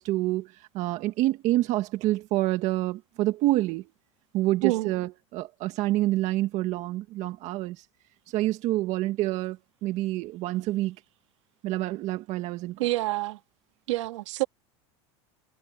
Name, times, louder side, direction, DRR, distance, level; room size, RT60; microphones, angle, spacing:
voice 1, 0.0-3.8 4.3-7.8 8.3-11.0 11.6-12.8, right 16 dB, 50° right, 1.8 m, -27 dB
voice 2, 12.8-13.4 13.9-14.4, right 19 dB, 85° right, 2.2 m, -27 dB
supercardioid pair, 135°, 15 cm